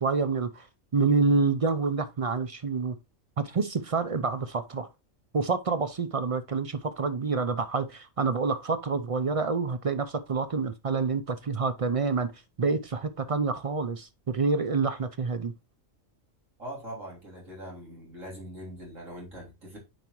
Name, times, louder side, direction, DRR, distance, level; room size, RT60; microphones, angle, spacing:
voice 1, 0.0-0.7 0.9-3.0 3.4-4.9 5.3-12.3 12.6-15.5, right 4 dB, 60° right, 0.3 m, -27 dB
voice 2, 16.6-19.8, equal, 75° right, 3.7 m, -42 dB
9.1 x 5.0 x 3.0 m
omnidirectional pair, 1.4 m